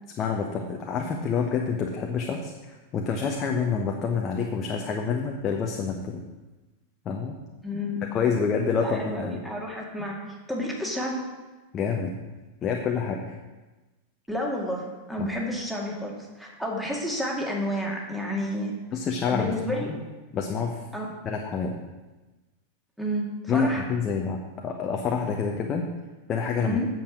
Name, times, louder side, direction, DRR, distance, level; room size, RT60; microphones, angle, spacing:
voice 1, 0.2-6.2 7.0-7.3 8.1-9.4 11.7-12.1 12.6-13.3 15.2-15.3 18.9-19.8 20.3-20.8 21.2-21.8 23.5-25.8 26.3-26.8, left 5 dB, 30° left, 2 dB, 1.0 m, -27 dB
voice 2, 7.6-8.0 8.8-10.2 10.5-11.2 14.3-18.7 19.3-20.0 20.9-21.1 23.0-23.8 26.6-26.9, equal, ahead, -2 dB, 2.2 m, -30 dB
8.6 x 7.2 x 6.1 m, 1.2 s
figure-of-eight pair, 90°, 0 cm